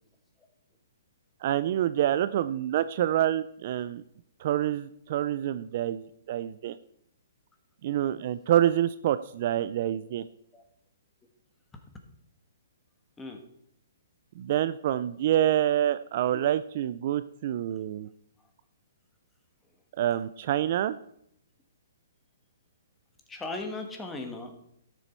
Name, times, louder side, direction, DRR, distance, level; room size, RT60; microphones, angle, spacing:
voice 1, 1.4-4.0 4.4-6.8 7.8-10.2 14.4-18.1 20.0-21.0, right 11 dB, 45° right, 13 dB, 0.4 m, -27 dB
voice 2, 23.3-24.6, left 2 dB, 10° left, 4 dB, 1.2 m, -38 dB
12.5 x 7.0 x 4.5 m, 0.73 s
hypercardioid pair, 160°, 0 cm